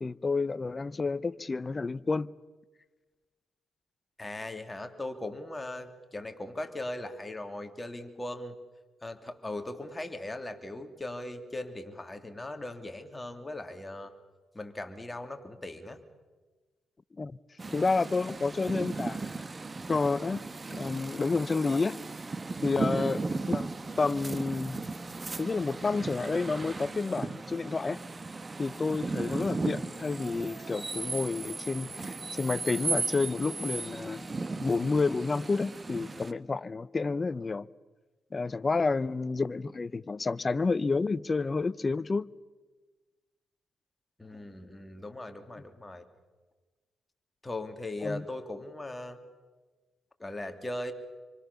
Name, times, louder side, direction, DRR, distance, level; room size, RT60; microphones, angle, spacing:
voice 1, 0.0-2.3 17.2-17.4 17.7-19.4 19.9-20.4 20.7-22.0 22.6-23.7 24.0-24.8 25.4-28.0 28.6-34.3 34.6-37.7 38.3-42.3 48.0-48.2, left 4 dB, 35° left, 0.8 m, -30 dB
voice 2, 4.2-8.5 9.0-14.1 14.5-16.0 22.9-23.2 44.2-46.0 47.4-49.2 50.2-50.9, left 1 dB, 20° left, 3.3 m, -39 dB
sound 1, 17.6-36.3, right 3 dB, 30° right, 1.3 m, -36 dB
27.5 x 25.0 x 7.1 m
supercardioid pair, 60°, 0 cm